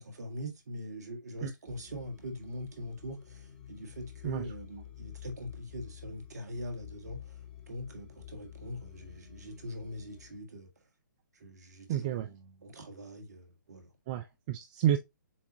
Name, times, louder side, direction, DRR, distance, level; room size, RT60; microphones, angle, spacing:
voice 1, 0.0-10.7 11.3-13.9, equal, 55° right, 1.4 m, -42 dB
sound 1, 1.7-10.4, left 11 dB, 25° left, 1.4 m, -50 dB
voice 2, 11.9-12.3 14.1-15.0, right 11 dB, 25° right, 0.4 m, -30 dB
7.1 x 2.4 x 2.7 m
figure-of-eight pair, 130°, 11 cm